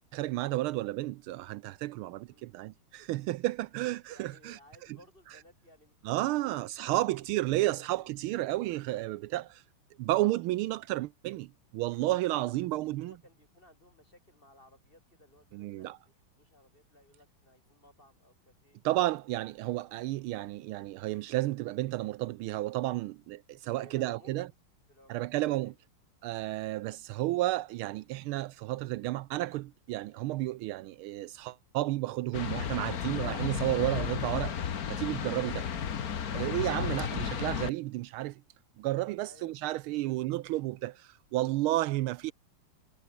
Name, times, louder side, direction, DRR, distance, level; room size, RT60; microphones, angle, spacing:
voice 1, 0.1-4.6 6.0-9.6 10.0-13.1 15.5-16.0 18.8-24.5 25.1-25.7 26.2-34.6 34.9-35.7 36.3-38.4 38.8-42.3, right 17 dB, 80° right, 1.4 m, -32 dB
voice 2, 2.2-2.5 4.1-6.4 6.9-7.1 7.4-8.1 12.2-18.8 23.8-24.5 24.9-25.8 39.2-39.5 40.0-40.7, left 1 dB, 25° left, 7.9 m, -60 dB
sound 1, 32.3-37.7, left 8 dB, 45° left, 1.6 m, -33 dB
omnidirectional pair, 2.4 m